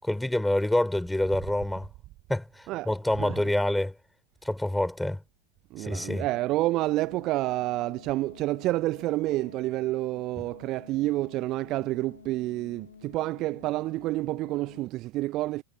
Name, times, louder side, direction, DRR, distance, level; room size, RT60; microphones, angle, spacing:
voice 1, 0.0-1.9 2.3-3.9 4.4-5.2 5.8-6.3 10.4-10.5, left 1 dB, 5° left, 5.5 m, -27 dB
voice 2, 5.7-15.6, right 17 dB, 35° right, 0.7 m, -29 dB
sound 1, 6.0-14.9, left 7 dB, 70° left, 3.7 m, -51 dB
figure-of-eight pair, 90°, 0 cm